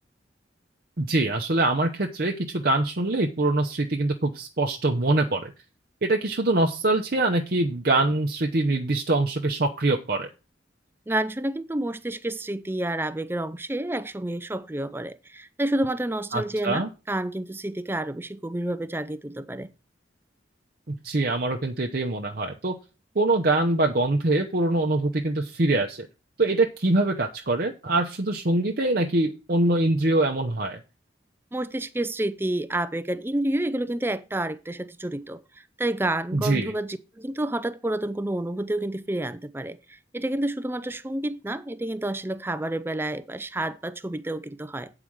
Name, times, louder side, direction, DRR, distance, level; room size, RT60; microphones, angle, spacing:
voice 1, 1.0-5.5 6.0-10.3 16.3-16.9 21.0-22.7 23.1-26.1 26.4-30.8 36.3-36.7, right 2 dB, 50° right, 0.8 m, -24 dB
voice 2, 11.1-19.7 31.5-35.4 35.8-44.9, right 1 dB, 10° right, 0.5 m, -29 dB
8.8 x 4.9 x 6.3 m
head